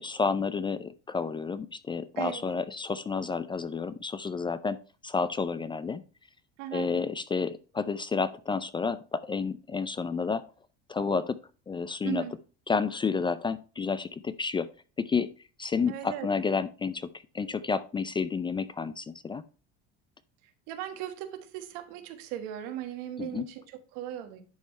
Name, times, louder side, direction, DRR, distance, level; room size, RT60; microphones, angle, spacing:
voice 1, 0.0-4.8 5.0-6.0 6.7-10.5 10.9-11.4 11.7-12.2 12.7-14.7 15.0-15.3 15.6-17.1 17.3-19.4 23.2-23.5, left 5 dB, 15° left, 0.3 m, -30 dB
voice 2, 6.6-6.9 12.0-12.3 15.9-16.3 20.7-24.4, right 12 dB, 75° right, 1.3 m, -37 dB
10.5 x 3.5 x 4.2 m
supercardioid pair, 110°, 29 cm